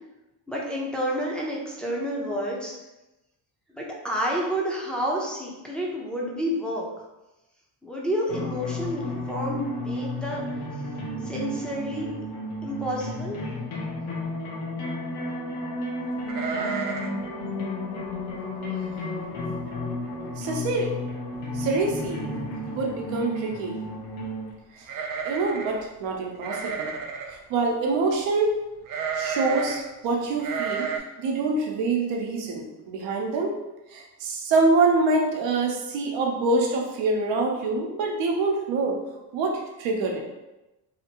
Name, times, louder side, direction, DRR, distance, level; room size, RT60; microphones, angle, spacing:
voice 1, 0.5-2.7 3.7-6.9 7.8-10.7 11.2-12.3 12.6-13.4, equal, ahead, -4 dB, 0.5 m, -29 dB
sound 1, 8.3-24.5, left 1 dB, 60° left, 0.9 m, -32 dB
sound 2, 16.3-17.2 17.5-17.6 18.1-18.3 18.9-19.0 19.3-19.8 20.1-20.2 21.3-21.4 21.7-22.2 24.8-25.8 26.4-27.4 28.9-29.8 30.4-31.0, right 6 dB, 50° right, 0.4 m, -31 dB
voice 2, 20.4-21.0 21.5-22.2 22.7-23.8 24.7-26.9 27.3-28.6 29.1-33.6 33.9-39.0 39.3-40.2, right 3 dB, 80° right, 1 dB, 0.8 m, -25 dB
2.8 x 2.5 x 2.9 m, 0.99 s
cardioid pair, 110°, 45 cm